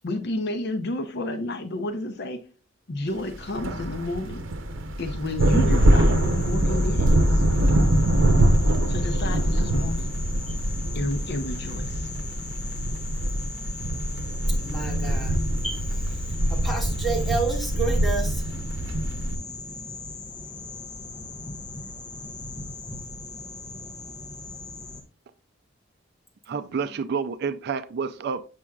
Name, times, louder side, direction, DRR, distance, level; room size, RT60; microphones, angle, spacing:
voice 1, 0.0-2.4 2.9-4.4 5.0-7.4 8.9-10.1 10.9-12.1, left 1 dB, 55° left, 0.7 m, -31 dB
sound 1, 3.3-19.4, right 1 dB, 80° right, 0.8 m, -23 dB
sound 2, 5.4-25.0, left 3 dB, 20° left, 0.9 m, -39 dB
voice 2, 14.6-15.4 15.6-15.8 16.5-18.4, right 4 dB, ahead, 1.9 m, -29 dB
voice 3, 26.5-28.5, right 5 dB, 55° right, 0.4 m, -29 dB
7.3 x 6.0 x 2.3 m
head